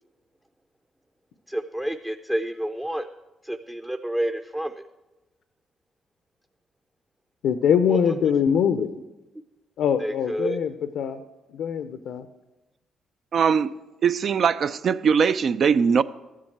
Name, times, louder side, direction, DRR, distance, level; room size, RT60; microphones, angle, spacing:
voice 1, 1.5-3.1 3.4-4.8 7.9-8.3 10.0-10.6, right 1 dB, 10° right, 0.6 m, -29 dB
voice 2, 7.4-9.0 9.8-11.2 11.5-12.3, left 7 dB, 80° left, 0.6 m, -23 dB
voice 3, 13.3-13.7 14.0-16.0, right 6 dB, 55° right, 0.5 m, -20 dB
12.5 x 7.5 x 7.9 m
cardioid pair, 90°, 0 cm